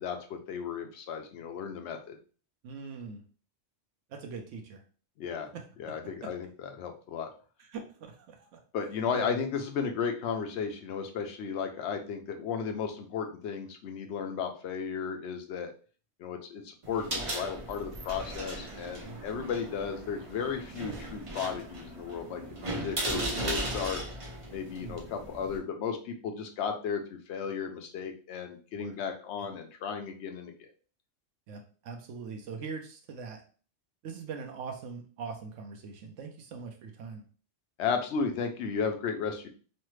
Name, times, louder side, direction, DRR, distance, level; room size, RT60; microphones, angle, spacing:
voice 1, 0.0-2.2 5.2-5.5 5.8-7.3 8.7-15.7 16.2-24.0 24.5-30.7 37.8-39.5, left 6 dB, 70° left, 5 dB, 0.8 m, -34 dB
voice 2, 2.6-3.2 4.1-4.8 5.5-6.0 6.2-6.3 7.6-8.6 9.1-9.3 19.0-19.2 24.7-25.0 28.7-28.9 29.4-29.5 31.5-33.4 34.0-37.2, right 5 dB, 80° right, 3 dB, 0.9 m, -42 dB
sound 1, 16.8-25.6, right 1 dB, 40° right, 0.5 m, -37 dB
3.2 x 2.1 x 3.0 m, 0.40 s
omnidirectional pair, 1.2 m